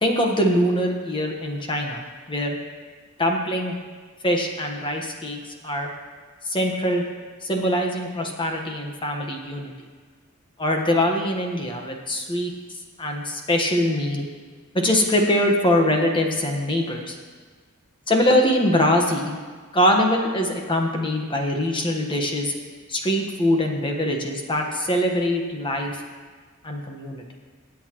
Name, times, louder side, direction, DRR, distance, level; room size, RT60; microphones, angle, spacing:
voice 1, 0.0-2.0 2.3-2.6 3.2-3.8 4.2-5.9 6.4-7.0 7.4-9.7 10.6-12.5 13.0-14.3 14.7-17.1 18.1-19.4 19.7-22.5 22.9-26.0 26.6-27.2, left 1 dB, 25° left, 2 dB, 1.3 m, -23 dB
24.5 x 8.3 x 3.1 m, 1.5 s
head